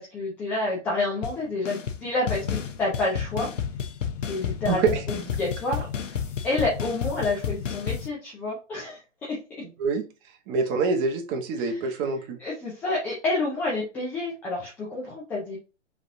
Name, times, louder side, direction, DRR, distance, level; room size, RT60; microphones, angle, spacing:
voice 1, 0.0-3.5 4.3-6.2 6.4-9.4 11.6-11.9 12.4-15.6, left 2 dB, 5° left, -5 dB, 0.3 m, -29 dB
sound 1, 1.2-1.4 1.6-2.0 2.3-8.1, left 8 dB, 80° left, 0.9 m, -31 dB
voice 2, 4.7-5.0 9.8-10.1 10.5-12.4, right 4 dB, 30° right, 4 dB, 1.1 m, -25 dB
5.0 x 3.4 x 2.6 m, 0.31 s
hypercardioid pair, 125°, 37 cm